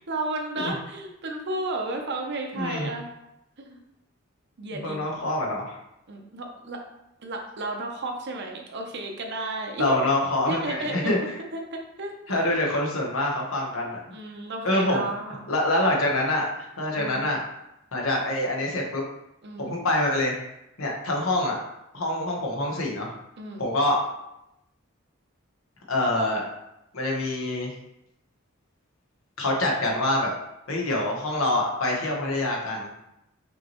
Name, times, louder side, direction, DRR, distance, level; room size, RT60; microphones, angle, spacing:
voice 1, 0.1-3.1 3.6-3.8 4.6-5.0 6.1-6.8 7.2-10.0 10.5-11.1 11.5-12.5 14.1-15.4 16.9-17.3 19.4-19.8 23.4-23.7, right 2 dB, 55° right, 2 dB, 0.7 m, -33 dB
voice 2, 2.5-2.9 4.8-5.8 9.8-11.4 12.3-14.1 14.6-15.0 15.5-17.4 17.9-19.0 19.6-20.4 20.8-21.6 21.9-23.1 23.6-24.0 25.9-26.4 26.9-27.7 29.4-30.3 30.7-32.9, left 1 dB, 75° left, -1 dB, 1.1 m, -25 dB
5.4 x 3.0 x 3.0 m, 0.84 s
head